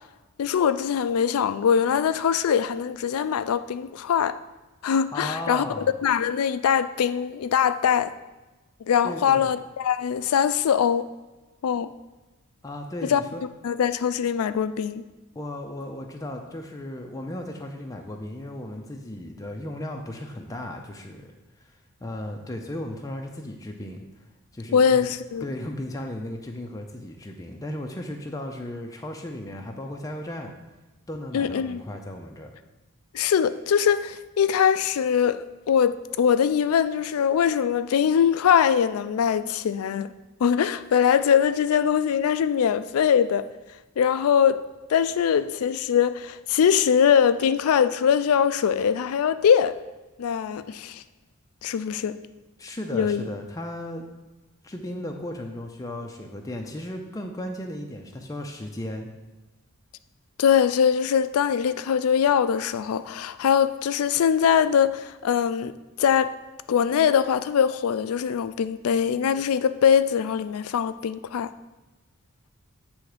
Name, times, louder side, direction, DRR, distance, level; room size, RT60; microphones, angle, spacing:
voice 1, 0.4-4.4 4.8-8.1 8.9-11.1 11.6-11.9 13.0-13.2 13.6-15.0 24.7-25.5 31.3-31.8 33.1-40.1 40.4-43.5 44.0-44.6 44.9-49.8 50.2-51.0 51.6-52.2 52.9-53.3 60.4-66.3 66.7-71.5, left 8 dB, 75° left, 0.3 m, -22 dB
voice 2, 5.1-5.9 9.0-9.5 12.6-13.4 15.4-21.3 22.0-24.2 24.5-25.1 25.4-30.6 31.1-32.5 52.6-54.0 54.6-59.1, left 1 dB, 15° left, 0.5 m, -35 dB
7.8 x 3.4 x 4.9 m
head